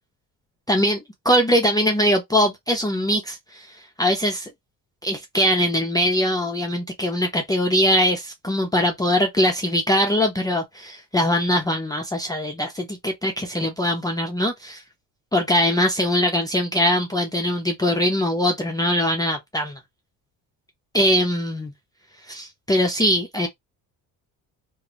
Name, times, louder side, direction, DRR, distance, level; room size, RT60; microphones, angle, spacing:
voice 1, 0.7-1.0 1.3-4.5 5.0-14.8 15.3-19.8 20.9-21.7 22.3-23.5, equal, 10° left, 0.5 m, -22 dB
2.5 x 2.3 x 2.9 m
cardioid pair, 110°, 34 cm